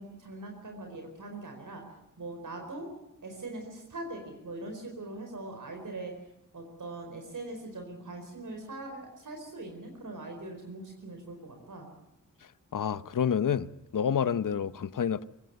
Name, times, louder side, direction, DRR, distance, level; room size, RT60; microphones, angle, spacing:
voice 1, 0.0-1.9 2.2-2.9 3.2-6.1 6.5-11.9, right 2 dB, 75° right, 4.6 m, -41 dB
voice 2, 12.7-15.3, left 8 dB, 75° left, 0.8 m, -28 dB
24.0 x 18.0 x 9.3 m
wide cardioid pair, 75°, 32 cm